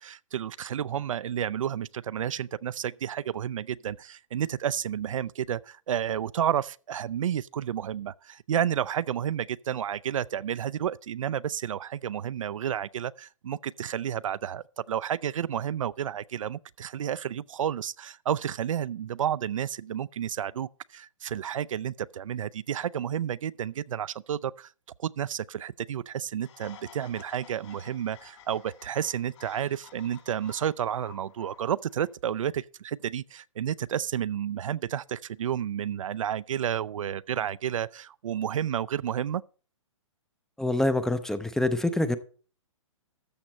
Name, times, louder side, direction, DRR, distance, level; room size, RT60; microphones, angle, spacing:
voice 1, 0.0-24.7 25.0-39.4, right 9 dB, 75° right, 0.4 m, -31 dB
sound 1, 26.4-32.1, left 8 dB, 60° left, 4.0 m, -52 dB
voice 2, 40.6-42.2, left 1 dB, 5° left, 0.4 m, -26 dB
13.5 x 6.5 x 4.2 m
hypercardioid pair, 135°, 17 cm